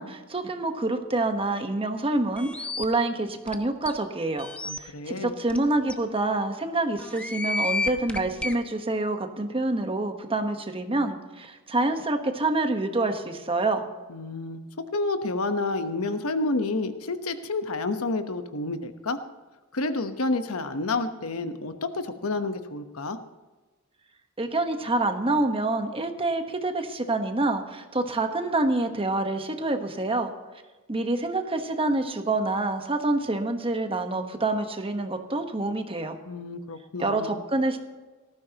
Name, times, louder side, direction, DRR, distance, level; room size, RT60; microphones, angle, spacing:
voice 1, 0.0-4.5 4.8-13.8 24.4-30.3 30.9-36.2 37.0-37.8, right 2 dB, 25° right, 6 dB, 1.2 m, -27 dB
sound 1, 2.4-2.8 3.5-3.6 3.8-3.9 4.4-4.8 5.5-5.6 5.9-6.0 7.0-8.5, left 3 dB, 5° left, 0.9 m, -30 dB
voice 2, 4.6-5.3 14.1-19.2 19.7-23.2 36.3-37.4, left 3 dB, 75° left, 8 dB, 1.1 m, -29 dB
18.0 x 14.5 x 3.0 m, 1.2 s
head